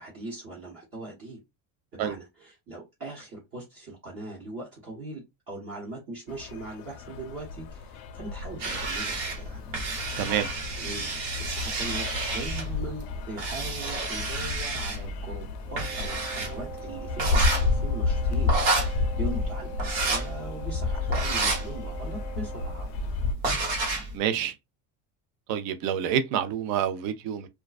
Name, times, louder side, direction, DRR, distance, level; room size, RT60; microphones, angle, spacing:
voice 1, 0.0-1.4 1.9-9.6 10.3-18.5 18.9-22.9, right 2 dB, 35° right, 0.9 m, -40 dB
sound 1, 6.3-23.3, left 3 dB, 70° left, 0.5 m, -32 dB
sound 2, 8.6-24.2, right 2 dB, 80° right, 1.3 m, -31 dB
voice 2, 10.2-10.5 24.1-24.5 25.5-27.5, right 9 dB, 55° right, 0.6 m, -27 dB
Wind instrument woodwind instrument, 15.7-23.0, right 5 dB, ahead, 0.4 m, -43 dB
2.3 x 2.2 x 2.4 m
cardioid pair, 145°, 41 cm